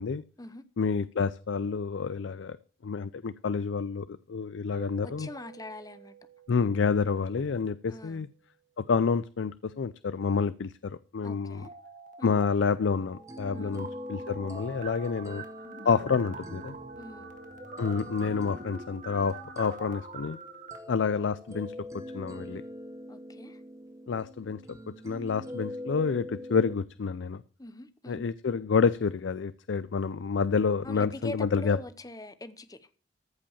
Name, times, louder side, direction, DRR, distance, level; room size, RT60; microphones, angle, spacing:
voice 1, 0.8-2.6 2.8-5.3 6.5-8.3 8.8-11.6 12.2-15.4 15.8-16.8 17.8-20.4 20.9-22.6 24.1-24.6 25.0-27.4 28.1-31.8, left 5 dB, 75° left, 0.4 m, -28 dB
sound 1, 4.7-9.4, right 9 dB, 70° right, 1.8 m, -54 dB
voice 2, 5.0-6.1 7.9-8.3 11.2-11.7 12.2-12.4 13.5-13.9 15.8-16.0 16.9-17.3 23.1-23.6 27.6-28.3 30.8-32.9, left 1 dB, 20° left, 0.8 m, -43 dB
sound 2, 11.5-12.5 12.7-20.8, right 3 dB, 45° right, 1.7 m, -45 dB
sound 3, 12.8-26.8, left 1 dB, 15° right, 1.0 m, -44 dB
14.5 x 5.2 x 7.0 m
head